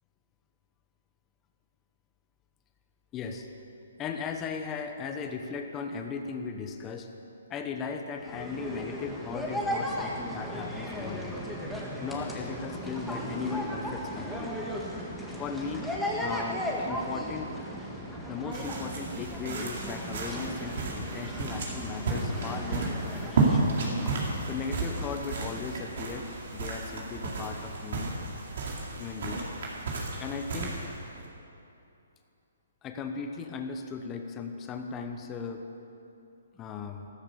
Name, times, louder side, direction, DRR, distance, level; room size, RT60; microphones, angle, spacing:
voice 1, 3.1-3.5 4.0-7.1 7.5-11.4 12.0-14.7 15.4-15.9 16.2-17.6 18.3-23.8 24.5-28.1 29.0-29.4 30.2-30.8 32.8-35.6 36.5-37.1, left 5 dB, 20° left, 5 dB, 1.1 m, -37 dB
sound 1, 8.2-26.6, equal, ahead, 1.7 m, -36 dB
sound 2, 18.5-31.3, right 3 dB, 60° right, 3.7 m, -32 dB
15.0 x 13.5 x 7.0 m, 2.7 s
hypercardioid pair, 155°, 0 cm